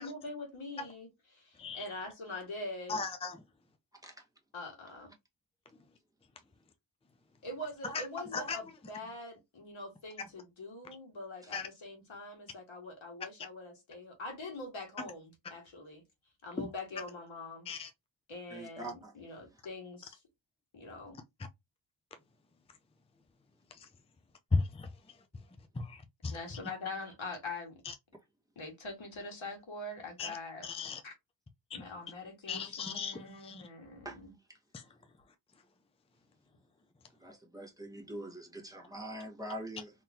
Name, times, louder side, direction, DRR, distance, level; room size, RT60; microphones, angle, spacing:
voice 1, 0.0-3.0 4.5-5.1 7.4-16.0 16.4-17.7 18.3-20.2 20.7-21.2 26.3-27.8 28.6-30.7 31.0-31.1 31.7-34.3, left 2 dB, 80° left, 2.0 m, -44 dB
voice 2, 2.9-3.4 7.8-8.0 8.3-8.6 11.5-11.7 16.6-16.7 17.7-17.9 23.7-23.9 24.5-24.9 25.7-26.3 27.8-27.9 30.2-30.4 30.6-31.0 31.7-31.8 32.5-33.6 34.7-34.8, left 4 dB, 15° left, 0.5 m, -36 dB
voice 3, 18.5-19.1 34.0-34.2 37.2-39.9, right 1 dB, 10° right, 1.3 m, -43 dB
3.8 x 3.0 x 2.7 m
wide cardioid pair, 120°, 47 cm